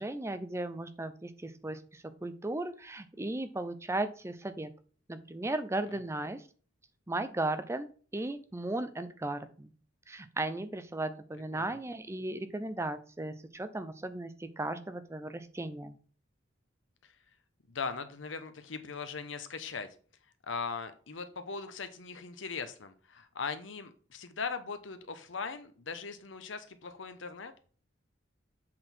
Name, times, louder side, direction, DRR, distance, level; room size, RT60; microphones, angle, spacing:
voice 1, 0.0-4.7 5.1-6.4 7.1-7.9 8.1-9.7 10.1-15.9, right 2 dB, 15° right, 11 dB, 0.5 m, -36 dB
voice 2, 17.7-19.9 20.4-27.5, left 5 dB, 80° left, 9 dB, 1.0 m, -39 dB
7.6 x 4.0 x 4.4 m, 0.41 s
head